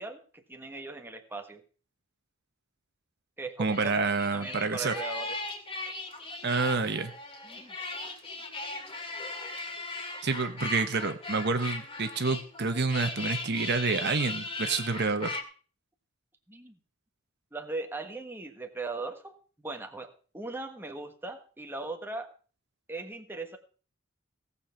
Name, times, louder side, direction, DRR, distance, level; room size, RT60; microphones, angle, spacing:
voice 1, 0.0-1.6 3.4-5.4 7.4-7.8 16.5-16.8 17.5-22.3 22.9-23.6, right 3 dB, 10° right, 5 dB, 1.4 m, -39 dB
sound 1, 3.6-15.4, left 3 dB, 30° left, 2.3 m, -38 dB
voice 2, 3.6-4.9 6.4-7.1 10.2-15.4, right 4 dB, 55° right, 8 dB, 1.0 m, -28 dB
17.5 x 7.1 x 5.7 m, 0.40 s
head